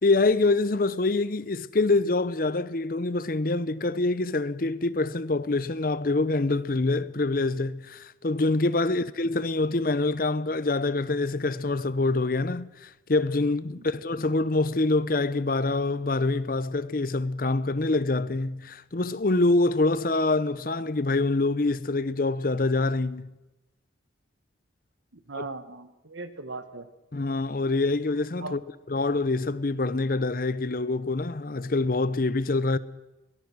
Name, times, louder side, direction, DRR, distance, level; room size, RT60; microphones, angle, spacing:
voice 1, 0.0-23.3 25.4-25.5 27.1-28.6 28.9-32.8, left 2 dB, 45° left, 0.7 m, -25 dB
voice 2, 25.1-26.9 28.4-28.6, right 3 dB, 80° right, 1.5 m, -39 dB
22.5 x 18.5 x 6.2 m
head